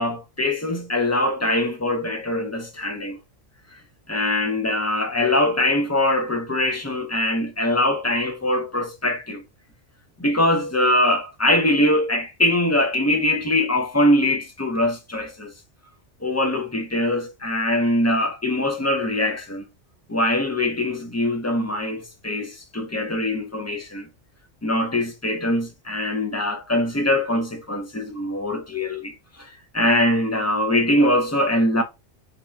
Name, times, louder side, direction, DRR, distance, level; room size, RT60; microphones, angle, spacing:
voice 1, 0.0-3.2 4.1-9.4 10.2-15.5 16.2-19.7 20.1-24.1 24.6-31.8, left 1 dB, 20° left, 0.4 m, -22 dB
3.1 x 2.8 x 3.5 m
omnidirectional pair, 1.2 m